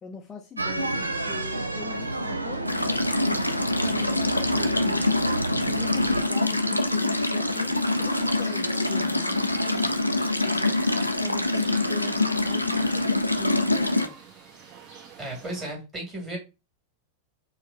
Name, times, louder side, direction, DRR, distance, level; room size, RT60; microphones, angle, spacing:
voice 1, 0.0-5.0 5.5-10.7 11.2-14.2, left 7 dB, 20° left, 0.5 m, -41 dB
sound 1, 0.6-6.3, right 2 dB, 80° right, 0.4 m, -30 dB
sound 2, 2.7-14.1, left 2 dB, 85° left, 0.4 m, -25 dB
sound 3, 6.7-15.7, right 5 dB, 35° right, 1.2 m, -48 dB
voice 2, 15.2-16.4, right 1 dB, 20° right, 2.1 m, -34 dB
4.4 x 2.3 x 3.7 m
figure-of-eight pair, 90°, 0 cm